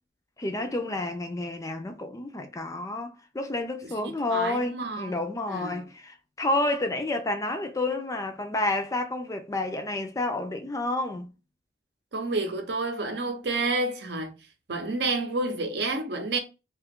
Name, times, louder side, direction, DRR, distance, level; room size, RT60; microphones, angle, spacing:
voice 1, 0.4-11.3, left 2 dB, 20° left, 0.3 m, -30 dB
voice 2, 4.0-5.1 5.5-5.8 12.1-14.4 14.7-16.4, right 2 dB, 65° right, 0.7 m, -29 dB
2.8 x 2.3 x 3.5 m
head